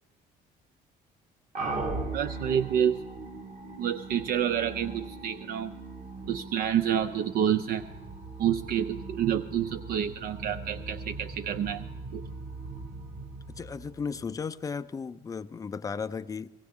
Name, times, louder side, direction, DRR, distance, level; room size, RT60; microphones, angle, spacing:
sound 1, 1.6-14.4, right 3 dB, 45° right, 1.5 m, -39 dB
voice 1, 2.1-3.0 3.8-5.7 6.3-7.9 8.4-12.2, right 9 dB, 60° right, 0.4 m, -28 dB
voice 2, 13.5-16.5, left 5 dB, 20° left, 0.4 m, -35 dB
18.0 x 16.0 x 3.6 m
cardioid pair, 110°, 17 cm